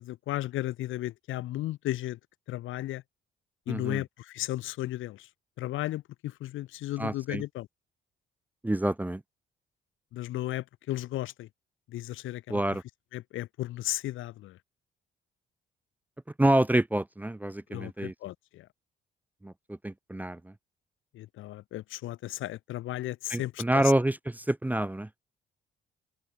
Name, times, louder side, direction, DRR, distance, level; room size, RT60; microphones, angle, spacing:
voice 1, 0.0-2.2 2.5-3.0 3.7-5.3 5.6-7.7 10.1-11.5 11.9-12.6 13.1-14.6 17.7-18.7 21.1-23.8, left 15 dB, 85° left, 1.7 m, -35 dB
voice 2, 3.7-4.0 7.0-7.4 8.6-9.2 12.5-12.8 16.4-18.1 19.4-20.5 23.3-25.1, right 1 dB, 10° right, 0.6 m, -27 dB
open air
cardioid pair, 90°, 20 cm